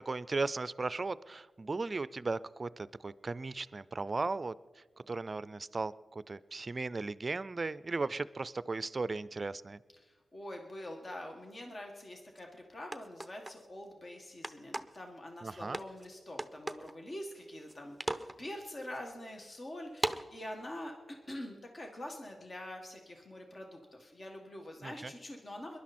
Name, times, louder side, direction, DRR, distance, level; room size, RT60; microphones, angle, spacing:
voice 1, 0.0-9.8 15.4-15.8 24.8-25.1, right 3 dB, 40° right, 17 dB, 0.4 m, -37 dB
voice 2, 10.0-20.9 21.3-25.8, left 1 dB, 45° left, 2 dB, 1.7 m, -45 dB
sound 1, 12.4-12.5 12.9-13.6 14.4-15.0 15.7-16.1 16.4-16.9 17.4-17.7 18.0-18.4 18.9-19.0 20.0-20.2, right 1 dB, 5° right, 0.7 m, -36 dB
22.0 x 11.5 x 4.3 m, 1.4 s
cardioid pair, 75°, 0 cm